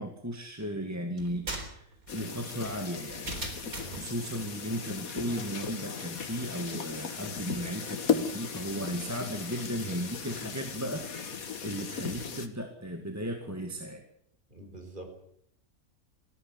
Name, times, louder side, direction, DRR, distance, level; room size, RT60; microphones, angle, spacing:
voice 1, 0.0-3.3 3.9-14.0, equal, 10° right, 4 dB, 2.0 m, -36 dB
sound 1, 1.2-4.1, right 2 dB, 70° right, 4.3 m, -39 dB
sound 2, 2.1-12.5, left 6 dB, 70° left, 2.1 m, -36 dB
voice 2, 14.5-15.2, right 1 dB, 30° right, 4 dB, 5.2 m, -45 dB
19.5 x 15.0 x 9.7 m, 0.70 s
omnidirectional pair, 1.6 m